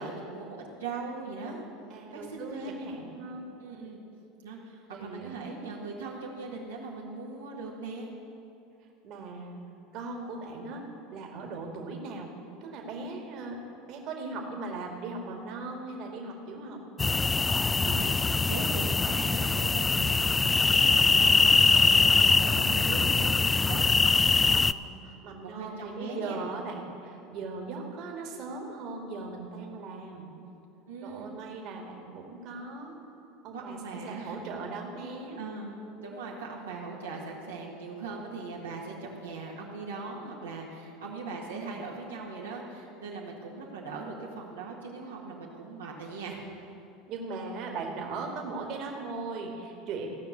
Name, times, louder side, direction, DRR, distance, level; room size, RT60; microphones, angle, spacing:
voice 1, 0.0-1.6 2.1-2.8 3.6-4.0 4.4-8.1 17.8-23.3 23.7-23.8 25.4-26.4 30.9-31.3 33.5-34.4 35.4-35.8 36.0-46.4, right 4 dB, 90° right, -4 dB, 1.8 m, -40 dB
voice 2, 1.9-3.9 4.9-5.4 9.0-9.6 9.9-12.3 12.6-13.6 13.9-16.8 24.4-30.3 31.0-33.0 33.4-35.4 47.1-50.1, right 3 dB, 55° right, 1 dB, 2.0 m, -39 dB
sound 1, 17.0-24.7, left 3 dB, 20° left, 0.3 m, -23 dB
16.0 x 5.9 x 8.2 m, 2.8 s
hypercardioid pair, 85°, 0 cm